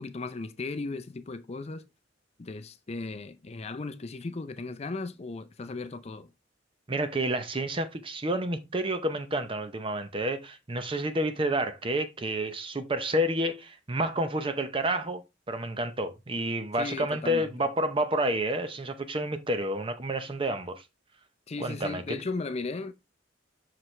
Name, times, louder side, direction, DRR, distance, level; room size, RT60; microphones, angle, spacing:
voice 1, 0.0-1.9 2.4-6.3 16.8-17.5 21.5-22.9, left 3 dB, 35° left, 0.5 m, -36 dB
voice 2, 6.9-15.2 15.5-20.8 21.6-22.2, right 1 dB, 30° right, 0.7 m, -29 dB
5.9 x 4.9 x 3.2 m
head